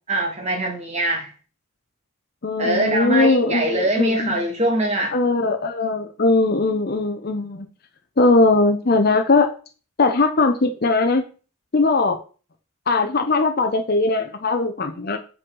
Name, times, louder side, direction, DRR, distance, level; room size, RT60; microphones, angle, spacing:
voice 1, 0.1-1.3 2.6-5.1, right 1 dB, 30° right, 2 dB, 1.7 m, -22 dB
voice 2, 2.4-4.4 5.1-7.7 8.2-9.5 10.0-11.2 11.7-12.2 12.9-15.2, left 3 dB, 45° left, 6 dB, 0.7 m, -19 dB
7.7 x 5.1 x 3.8 m, 0.37 s
head